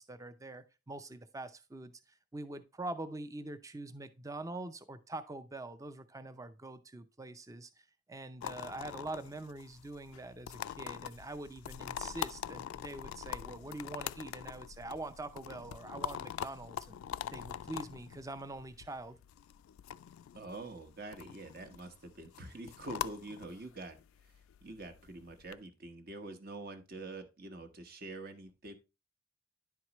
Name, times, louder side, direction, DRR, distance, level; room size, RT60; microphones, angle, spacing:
voice 1, 0.0-17.0 17.3-19.2, right 2 dB, 15° right, 0.5 m, -44 dB
sound 1, 8.4-25.6, left 10 dB, 90° left, 0.3 m, -44 dB
voice 2, 20.3-24.0 24.2-28.7, right 2 dB, 50° right, 1.1 m, -46 dB
10.5 x 4.6 x 3.0 m
head